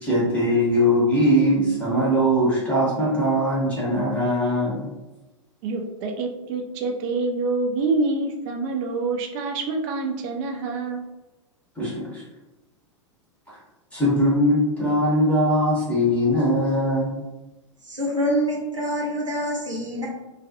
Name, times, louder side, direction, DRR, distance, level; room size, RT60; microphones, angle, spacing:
voice 1, 0.0-4.9 11.8-12.2 13.9-17.1, equal, 10° left, -7 dB, 0.8 m, -21 dB
voice 2, 5.6-11.0, right 3 dB, 35° right, 3 dB, 0.4 m, -26 dB
voice 3, 17.8-20.1, equal, 80° right, -2 dB, 0.7 m, -26 dB
2.3 x 2.2 x 2.6 m, 1.0 s
figure-of-eight pair, 90°, 16 cm